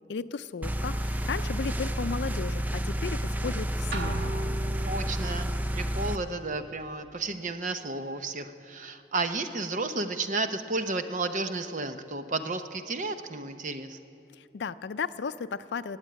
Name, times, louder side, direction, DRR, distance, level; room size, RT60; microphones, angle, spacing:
voice 1, 0.0-4.2 14.4-16.0, left 5 dB, 75° left, 14 dB, 0.4 m, -35 dB
sound 1, 0.6-6.2, equal, 10° right, 0.3 m, -30 dB
sound 2, 3.9-5.4, right 2 dB, 75° right, 1.4 m, -36 dB
voice 2, 4.8-14.0, right 3 dB, 45° right, 9 dB, 0.7 m, -32 dB
18.5 x 8.1 x 8.7 m, 2.7 s
head